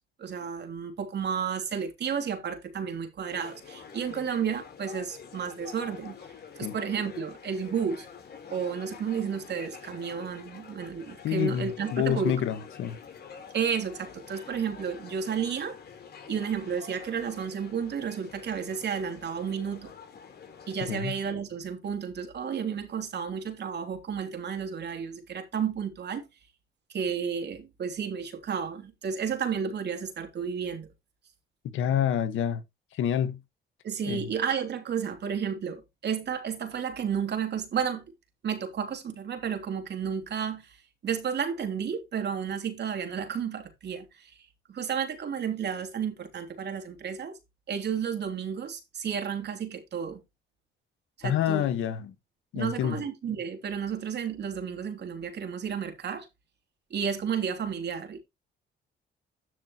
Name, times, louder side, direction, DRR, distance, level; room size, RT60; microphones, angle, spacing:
voice 1, 0.2-6.2 6.6-8.1 8.5-12.4 13.5-15.8 16.3-19.9 20.7-26.2 26.9-30.9 33.8-38.0 38.4-40.8 41.0-44.4 44.7-47.4 47.7-50.2 51.2-51.7 52.5-56.3 56.9-58.2, right 7 dB, 60° right, 3.4 m, -32 dB
sound 1, 3.3-21.0, left 7 dB, 55° left, 4.2 m, -47 dB
voice 2, 11.2-13.0 20.9-21.2 31.6-32.6 32.9-33.4 34.0-34.2 51.2-52.1 52.5-53.0, left 10 dB, 80° left, 1.6 m, -28 dB
12.5 x 6.3 x 3.1 m
cardioid pair, 90°, 20 cm